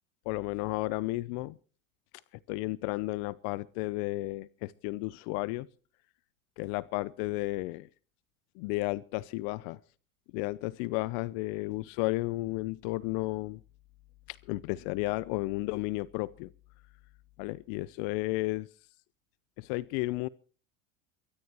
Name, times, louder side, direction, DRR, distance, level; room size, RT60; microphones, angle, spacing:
voice 1, 0.3-1.6 2.5-5.7 6.6-7.9 8.6-9.8 10.3-13.6 14.3-16.5 17.4-18.7 19.6-20.3, left 20 dB, 60° left, 0.7 m, -33 dB
23.0 x 18.5 x 3.0 m
supercardioid pair, 110°, 41 cm